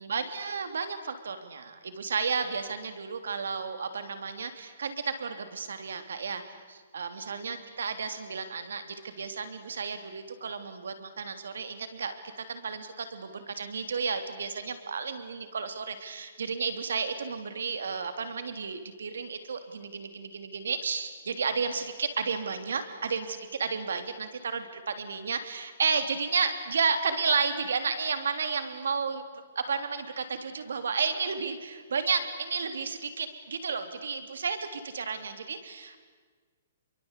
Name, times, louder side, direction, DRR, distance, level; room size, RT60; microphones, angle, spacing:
voice 1, 0.0-12.1 12.5-29.2 29.5-36.0, right 5 dB, 85° right, 8 dB, 3.2 m, -32 dB
28.5 x 23.0 x 8.3 m, 1.4 s
hypercardioid pair, 165°, 0 cm